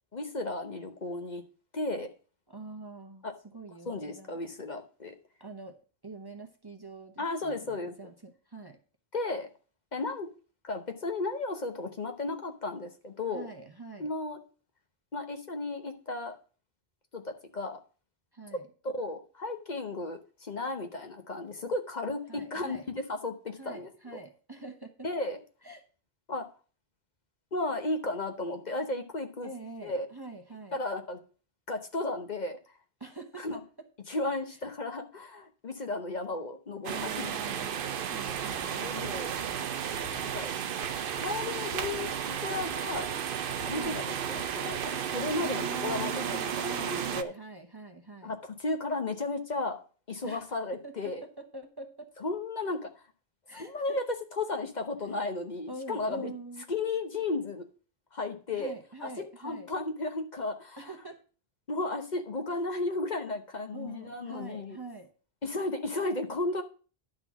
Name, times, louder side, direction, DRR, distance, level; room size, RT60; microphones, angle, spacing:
voice 1, 0.1-1.4 1.7-2.1 3.2-3.3 3.9-5.1 7.2-8.0 9.1-9.5 9.9-10.3 10.6-13.5 14.0-14.4 15.1-16.4 17.1-17.8 18.5-18.6 18.8-24.2 25.0-25.4 26.3-26.5 27.5-29.5 29.8-30.1 30.7-31.2 31.7-32.6 33.4-33.6 34.1-37.7 38.5-39.3 40.2-40.5 41.2-43.1 43.6-47.3 48.2-49.8 50.1-51.2 52.2-53.0 53.6-54.0 54.4-56.3 56.7-57.6 58.1-58.7 59.0-59.1 59.4-60.9 61.7-64.8 65.4-66.6, left 2 dB, 45° left, 5 dB, 1.0 m, -34 dB
voice 2, 2.5-4.4 5.4-5.8 6.0-8.8 13.3-14.1 18.3-18.7 22.3-22.9 23.6-25.1 25.6-25.8 29.4-30.8 33.0-33.6 36.9-39.1 43.7-44.1 45.4-48.3 50.2-50.5 50.8-52.1 53.5-54.0 55.7-56.6 58.5-59.7 60.8-61.2 62.5-62.6 63.7-65.1, right 3 dB, 25° right, 4 dB, 0.9 m, -44 dB
sound 1, 36.8-47.2, right 8 dB, 60° right, 0.8 m, -33 dB
sound 2, 38.3-38.8 39.0-39.7 39.9-40.6 40.8-41.5 41.7-45.4, left 1 dB, 75° left, 1.6 m, -49 dB
11.0 x 3.9 x 7.1 m, 0.38 s
omnidirectional pair, 1.1 m